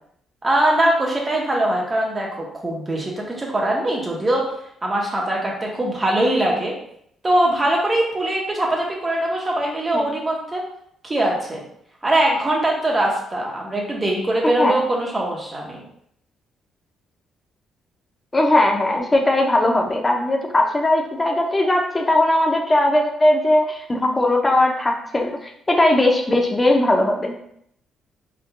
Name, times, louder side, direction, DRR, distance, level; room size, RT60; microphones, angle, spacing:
voice 1, 0.4-4.5 4.8-6.7 7.2-10.6 11.0-11.6 12.0-15.8, right 1 dB, 25° right, -2 dB, 1.2 m, -22 dB
voice 2, 18.3-27.4, left 1 dB, 20° left, 1 dB, 0.7 m, -19 dB
4.3 x 3.7 x 2.3 m, 0.70 s
cardioid pair, 90°, 0 cm